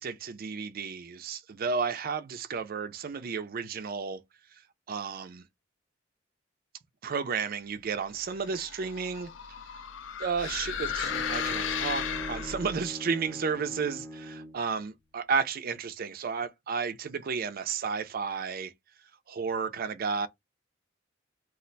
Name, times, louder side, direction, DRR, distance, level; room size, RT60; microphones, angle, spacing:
voice 1, 0.0-4.2 4.9-5.4 7.0-9.3 10.2-18.7 19.3-20.3, right 5 dB, 50° right, 0.4 m, -32 dB
sound 1, 8.4-12.9, left 8 dB, 65° left, 0.4 m, -35 dB
Bowed string instrument, 10.5-14.7, equal, 10° left, 0.6 m, -41 dB
2.4 x 2.1 x 3.8 m
head